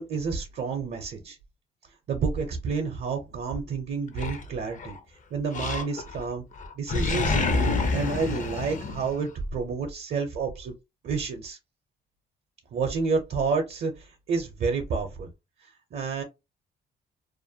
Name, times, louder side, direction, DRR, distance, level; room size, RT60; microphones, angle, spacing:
voice 1, 0.0-1.4 2.1-5.0 5.3-6.4 6.8-10.7 11.0-11.6 12.7-15.3 15.6-16.2, right 5 dB, 55° right, 0.6 m, -30 dB
Animal, 4.2-5.0 5.5-6.3 6.6-9.5, left 3 dB, 40° left, 0.5 m, -28 dB
2.4 x 2.1 x 2.7 m
cardioid pair, 90°, 20 cm